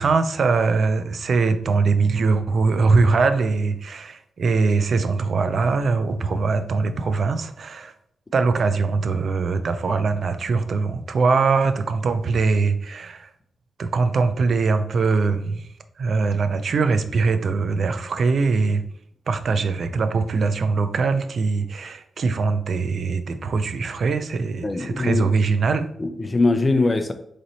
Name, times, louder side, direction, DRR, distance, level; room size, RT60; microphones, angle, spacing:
voice 1, 0.0-7.9 8.3-13.3 13.8-15.6 16.0-18.8 19.3-25.9, right 4 dB, 60° right, 10 dB, 0.5 m, -22 dB
voice 2, 24.6-25.3 26.0-27.1, left 3 dB, 25° left, 8 dB, 0.5 m, -21 dB
4.0 x 3.2 x 4.0 m, 0.70 s
cardioid pair, 75°, 0 cm